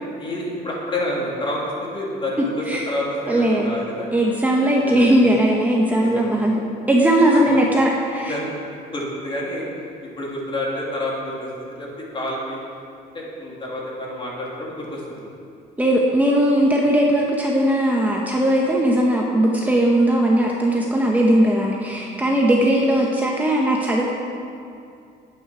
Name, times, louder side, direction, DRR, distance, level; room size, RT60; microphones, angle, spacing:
voice 1, 0.2-4.1 4.8-5.1 6.0-6.6 7.3-7.6 8.3-8.6 8.9-9.7 10.0-12.6 13.1-15.3 16.8-16.9, left 1 dB, 30° left, -4 dB, 3.0 m, -29 dB
voice 2, 2.4-2.9 3.3-3.7 4.1-6.6 6.9-8.3 15.8-24.0, right 1 dB, 10° right, -2 dB, 1.2 m, -18 dB
9.5 x 9.4 x 6.3 m, 2.5 s
cardioid pair, 110°, 17 cm